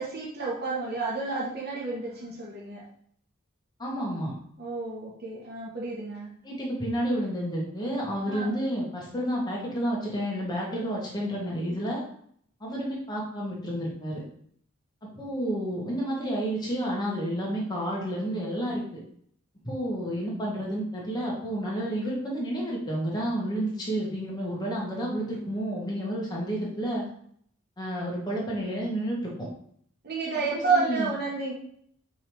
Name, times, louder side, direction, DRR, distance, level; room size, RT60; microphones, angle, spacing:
voice 1, 0.0-2.8 4.6-6.3 8.3-8.6 30.0-31.5, right 4 dB, 50° right, -5 dB, 1.5 m, -30 dB
voice 2, 3.8-4.3 6.4-12.0 12.6-14.2 15.1-19.0 19.6-27.0 27.8-29.3 30.5-31.1, equal, 20° left, -4 dB, 1.7 m, -30 dB
5.4 x 3.7 x 4.8 m, 0.65 s
head